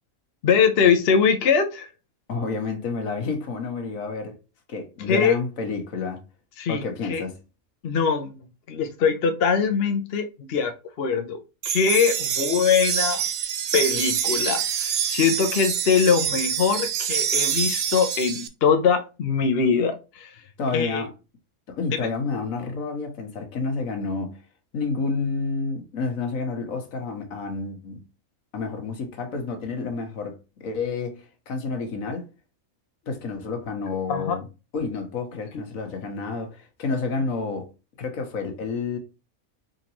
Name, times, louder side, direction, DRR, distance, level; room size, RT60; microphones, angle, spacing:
voice 1, 0.4-1.9 5.1-5.4 6.6-6.8 7.1-7.2 7.8-8.4 8.7-11.4 11.6-13.2 13.7-20.3 20.7-21.0 34.1-34.4, left 6 dB, 55° left, 0.8 m, -22 dB
voice 2, 2.3-4.4 4.7-6.2 6.7-7.4 20.6-21.1 21.7-24.4 24.7-28.0 28.5-32.3 33.1-34.5 34.7-37.7 38.0-39.0, left 4 dB, 70° left, 1.5 m, -29 dB
sound 1, 11.6-18.5, right 9 dB, 80° right, 1.1 m, -26 dB
4.4 x 3.9 x 2.9 m
omnidirectional pair, 1.5 m